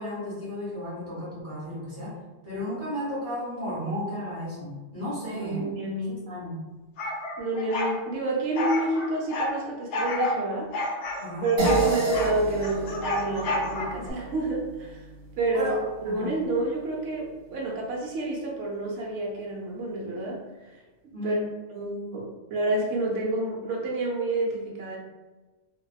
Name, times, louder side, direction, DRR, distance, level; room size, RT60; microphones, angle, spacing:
voice 1, 0.0-2.2 2.4-5.7 6.1-6.6 11.2-11.5 15.5-16.4 21.1-21.5, equal, 15° left, -8 dB, 1.1 m, -34 dB
voice 2, 5.4-6.2 7.4-10.7 11.4-15.1 15.4-20.8 21.2-21.4 21.7-25.0, right 2 dB, 75° right, -2 dB, 0.9 m, -29 dB
sound 1, 7.0-8.0 8.5-9.5 9.9-10.4 10.7-12.3 12.6-14.1, left 2 dB, 75° left, 0.8 m, -30 dB
sound 2, 11.6-16.3, right 4 dB, 50° right, 0.7 m, -31 dB
2.7 x 2.2 x 2.3 m, 1.2 s
omnidirectional pair, 1.2 m